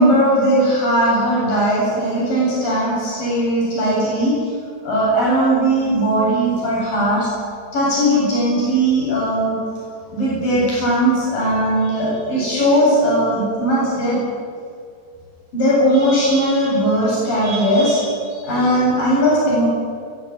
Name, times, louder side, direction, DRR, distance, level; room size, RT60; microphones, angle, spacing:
voice 1, 0.0-4.4 4.8-7.3 7.7-9.6 10.1-14.2 15.5-19.7, right 1 dB, 75° left, -6 dB, 9.9 m, -18 dB
22.5 x 15.0 x 9.3 m, 2.2 s
omnidirectional pair, 4.0 m